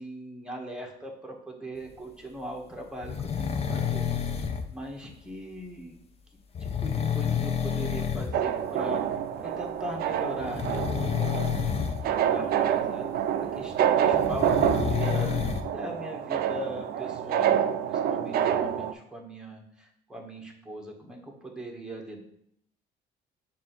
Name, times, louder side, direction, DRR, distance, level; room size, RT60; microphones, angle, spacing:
voice 1, 0.0-4.1 4.4-5.9 6.6-11.7 12.0-15.4 15.7-22.2, right 1 dB, 5° right, 0 dB, 1.4 m, -40 dB
sound 1, 3.0-4.7 6.5-8.3 8.6-9.0 10.4-12.0 14.1-15.6, left 7 dB, 35° left, 0.7 m, -29 dB
sound 2, 8.3-18.9, right 9 dB, 65° right, 0.5 m, -27 dB
7.3 x 2.8 x 5.8 m, 0.72 s
cardioid pair, 110°, 17 cm